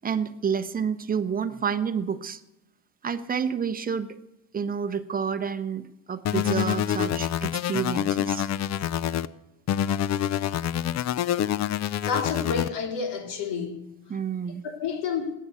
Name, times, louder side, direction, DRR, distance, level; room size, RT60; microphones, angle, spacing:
voice 1, 0.0-2.4 3.0-4.2 4.5-8.5 14.1-14.6, right 7 dB, 20° right, 0.8 m, -29 dB
sound 1, 6.3-9.3 9.7-12.7, left 10 dB, 40° left, 0.5 m, -26 dB
voice 2, 12.0-13.8 14.6-15.3, left 5 dB, 75° left, 3.0 m, -29 dB
19.0 x 8.5 x 8.4 m
cardioid pair, 155°, 43 cm